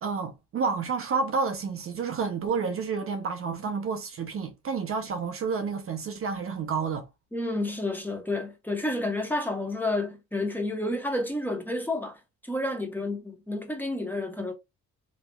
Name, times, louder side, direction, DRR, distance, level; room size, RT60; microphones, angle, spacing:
voice 1, 0.0-7.1, right 5 dB, 45° right, 0.5 m, -30 dB
voice 2, 7.3-14.5, left 2 dB, 5° left, 0.9 m, -30 dB
2.9 x 2.8 x 2.2 m
cardioid pair, 90°, 30 cm